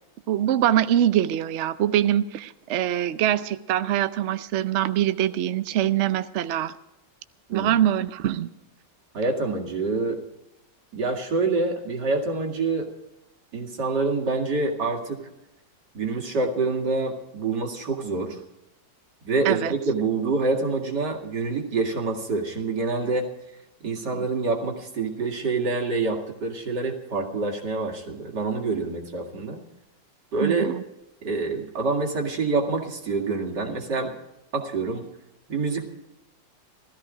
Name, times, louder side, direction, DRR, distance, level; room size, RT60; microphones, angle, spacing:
voice 1, 0.3-6.7 7.5-8.5 19.4-19.7 24.1-24.3 30.4-30.8, right 11 dB, 85° right, 12 dB, 0.6 m, -23 dB
voice 2, 9.1-10.2 10.9-12.9 13.5-15.3 15.9-18.4 19.2-23.3 23.8-29.6 30.3-30.7 31.2-34.1 34.5-35.1 35.5-35.8, right 3 dB, 60° right, 2 dB, 2.7 m, -26 dB
16.5 x 14.0 x 5.1 m, 0.90 s
omnidirectional pair, 2.0 m